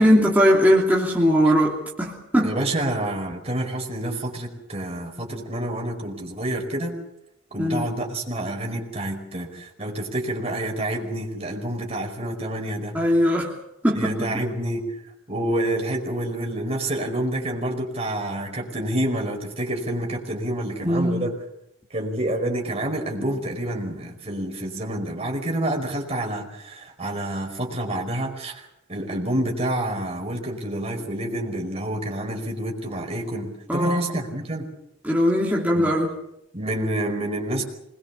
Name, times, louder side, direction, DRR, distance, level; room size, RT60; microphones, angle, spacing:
voice 1, 0.0-2.5 7.6-7.9 12.9-13.5 13.8-14.2 20.8-21.3 33.7-34.0 35.0-36.1, equal, 10° right, -4 dB, 2.9 m, -20 dB
voice 2, 2.4-7.0 7.5-13.0 13.9-14.8 15.3-21.4 21.9-34.7 35.7-36.0 36.5-37.6, right 1 dB, 30° right, 2 dB, 5.0 m, -28 dB
25.5 x 21.5 x 7.2 m, 0.79 s
head